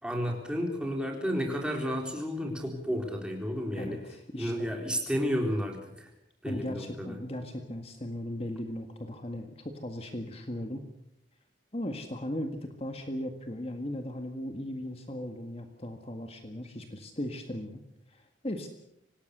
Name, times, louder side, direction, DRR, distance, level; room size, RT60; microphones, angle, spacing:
voice 1, 0.0-4.0 4.4-6.1 6.4-7.2, equal, 5° right, 1 dB, 4.0 m, -32 dB
voice 2, 3.8-4.7 6.5-10.9 11.7-18.7, left 1 dB, 30° left, 5 dB, 1.8 m, -37 dB
25.5 x 19.0 x 6.8 m, 0.77 s
head